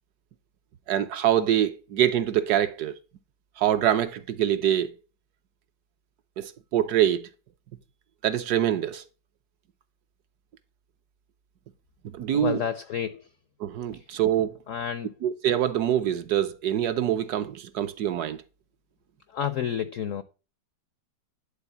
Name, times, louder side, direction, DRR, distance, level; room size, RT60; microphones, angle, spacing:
voice 1, 0.9-2.9 3.6-4.9 6.4-7.3 8.2-9.0 12.1-12.6 13.6-14.6 15.2-18.4, right 11 dB, 70° right, 1.0 m, -25 dB
voice 2, 12.3-13.3 13.9-14.0 14.7-15.1 19.3-20.2, left 9 dB, 75° left, 0.7 m, -30 dB
11.0 x 3.8 x 7.2 m
omnidirectional pair, 2.0 m